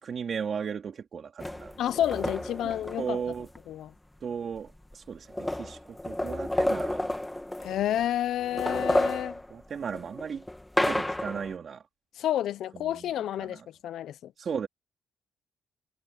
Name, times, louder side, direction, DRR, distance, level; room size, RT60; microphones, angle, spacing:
voice 1, 0.0-2.2 2.6-3.5 4.2-7.1 9.5-10.4 10.8-11.8 12.7-13.1 13.4-13.7 14.4-14.7, right 6 dB, 50° right, 3.3 m, -36 dB
sound 1, 1.4-3.6 4.6-4.7 4.9-8.0 8.4-11.5, left 1 dB, 10° left, 2.2 m, -31 dB
voice 2, 1.8-3.2 3.7-3.9 7.6-9.4 12.2-14.3, left 11 dB, 75° left, 0.8 m, -30 dB
cardioid pair, 90°, 0 cm